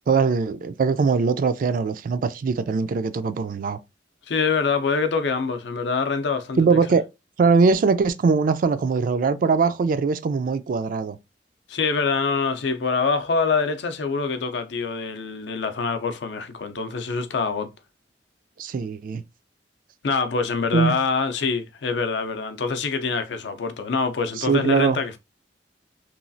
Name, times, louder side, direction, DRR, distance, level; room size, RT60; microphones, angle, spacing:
voice 1, 0.1-3.8 6.6-7.0 7.4-11.2 18.6-19.2 20.7-21.0 24.4-25.0, right 5 dB, 50° right, 0.3 m, -21 dB
voice 2, 4.3-6.7 11.7-17.7 20.0-25.2, left 4 dB, 75° left, 0.5 m, -25 dB
3.0 x 2.3 x 2.5 m
head